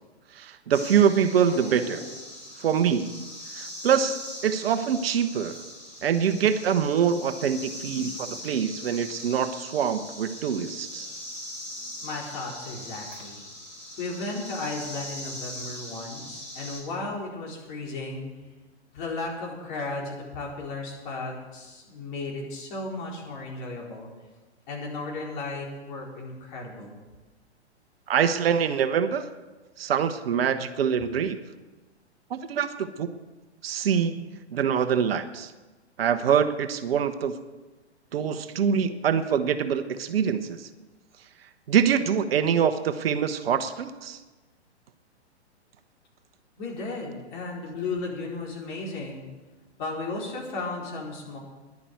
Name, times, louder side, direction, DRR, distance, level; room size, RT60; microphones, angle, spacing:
voice 1, 0.4-2.0 2.6-3.2 3.5-5.6 6.0-11.1 28.1-29.2 29.8-31.4 32.3-33.2 33.6-35.5 36.0-37.3 38.1-40.6 41.7-44.2, right 7 dB, 55° right, 9 dB, 1.0 m, -24 dB
sound 1, 0.7-16.8, left 1 dB, 20° left, 4.3 m, -40 dB
voice 2, 12.0-13.4 14.0-18.2 18.9-24.1 24.7-27.0 46.6-49.3 49.8-51.4, left 3 dB, 45° left, -2 dB, 4.4 m, -35 dB
11.0 x 11.0 x 7.8 m, 1.2 s
figure-of-eight pair, 120°, 34 cm